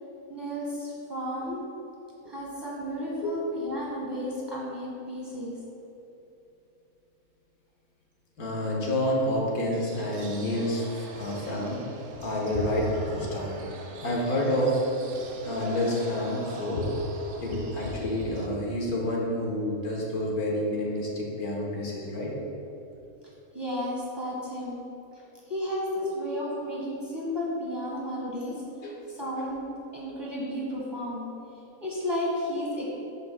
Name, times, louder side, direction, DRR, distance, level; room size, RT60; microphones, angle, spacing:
voice 1, 0.3-1.6 2.3-5.6 23.5-24.8 25.5-28.6 29.1-29.6 29.9-31.3 31.8-32.9, left 1 dB, 15° right, -5 dB, 1.4 m, -33 dB
voice 2, 8.4-11.8 12.2-13.6 14.0-14.8 15.4-22.3 28.8-29.0, left 1 dB, 80° left, -2 dB, 1.7 m, -28 dB
sound 1, 9.7-18.5, right 2 dB, 55° right, 0.7 m, -43 dB
11.5 x 5.6 x 2.2 m, 3.0 s
omnidirectional pair, 1.6 m